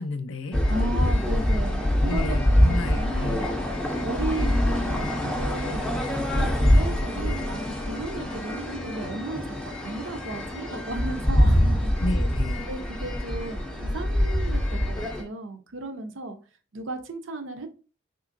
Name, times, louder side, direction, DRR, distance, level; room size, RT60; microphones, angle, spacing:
voice 1, 0.0-0.6 2.1-3.4 12.0-12.7, left 2 dB, 75° left, 0.5 m, -32 dB
sound 1, 0.5-15.2, left 1 dB, 5° left, 0.4 m, -24 dB
voice 2, 0.7-3.5 4.0-12.0 12.7-16.4 16.7-17.7, right 2 dB, 70° right, 0.6 m, -35 dB
3.7 x 2.9 x 2.5 m
head